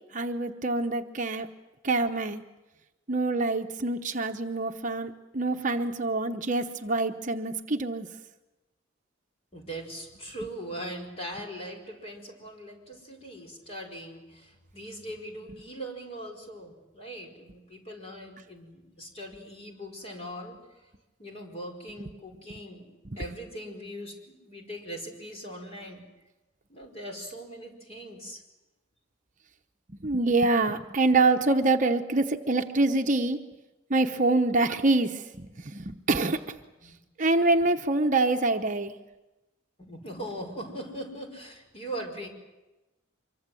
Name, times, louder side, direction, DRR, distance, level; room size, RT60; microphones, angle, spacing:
voice 1, 0.1-1.5 1.8-2.4 3.1-8.1 22.5-22.6 23.1-23.2 29.9-33.4 33.9-36.4 37.2-38.9, right 2 dB, 40° right, 5 dB, 0.9 m, -25 dB
voice 2, 9.5-20.6 21.2-26.0 26.7-28.4 36.8-36.9 39.8-42.3, right 1 dB, 30° left, 2 dB, 4.9 m, -40 dB
25.0 x 23.5 x 7.7 m, 1.1 s
head